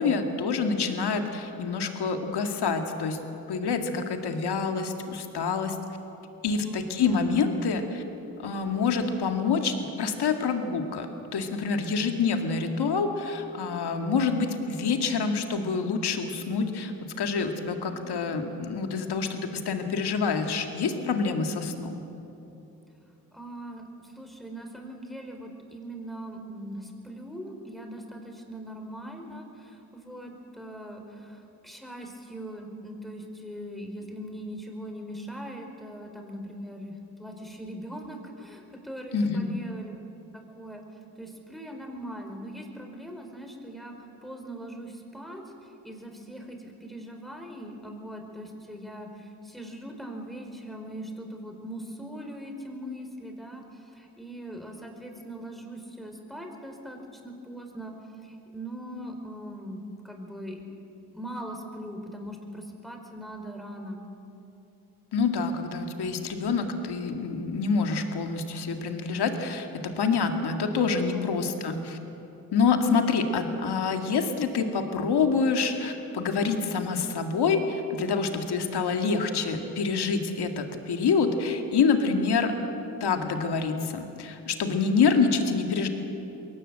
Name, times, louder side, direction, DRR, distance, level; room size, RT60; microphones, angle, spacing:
voice 1, 0.0-3.2 3.5-5.8 6.4-8.0 8.4-22.0 39.1-39.5 65.1-72.0 72.5-82.5 83.0-85.9, left 5 dB, 70° left, 5 dB, 2.1 m, -27 dB
voice 2, 6.5-7.2 17.8-18.0 23.3-39.9 40.3-40.8 41.2-43.9 44.2-57.9 58.2-60.6 61.1-64.0 71.1-71.3, right 1 dB, ahead, 3 dB, 4.7 m, -41 dB
22.0 x 17.5 x 7.8 m, 3.0 s
supercardioid pair, 40°, 41 cm